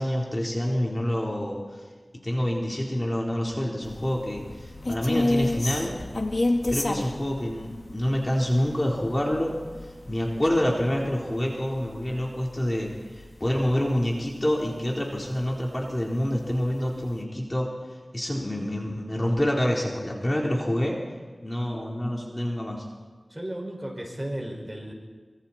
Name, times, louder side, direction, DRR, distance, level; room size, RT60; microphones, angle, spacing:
voice 1, 0.0-1.6 2.2-6.0 6.3-9.6 10.1-12.9 13.2-17.7 18.1-21.0 21.4-22.9, left 1 dB, 25° left, -2 dB, 4.2 m, -27 dB
sound 1, 3.8-14.2 14.6-14.7 15.2-15.9 16.3-16.4 16.8-17.2, left 2 dB, 55° left, 2.2 m, -31 dB
voice 2, 23.3-24.9, right 1 dB, 15° right, 0 dB, 5.8 m, -34 dB
26.5 x 25.0 x 4.5 m, 1.4 s
wide cardioid pair, 50°, 0 cm